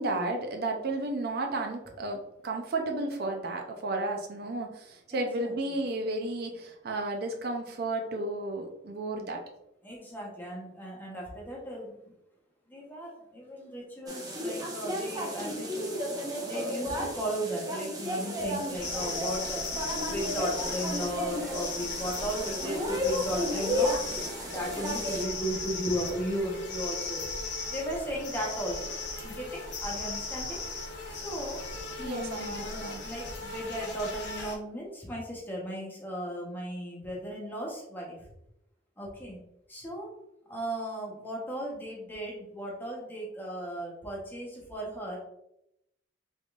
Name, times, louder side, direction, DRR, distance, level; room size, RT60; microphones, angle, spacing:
voice 1, 0.0-9.4 32.0-33.0, right 2 dB, 60° right, 3 dB, 0.5 m, -33 dB
voice 2, 5.1-5.8 9.8-12.1 12.7-16.0 16.4-19.6 20.0-27.3 27.7-28.9 29.2-30.6 31.1-31.6 32.0-38.2 39.0-39.4 39.7-40.1 40.5-45.2, right 1 dB, 10° left, -3 dB, 0.9 m, -36 dB
sound 1, 14.1-25.2, equal, 20° right, 0.7 m, -33 dB
sound 2, 18.7-34.6, left 3 dB, 75° left, 1.0 m, -37 dB
3.5 x 3.5 x 2.4 m, 0.82 s
head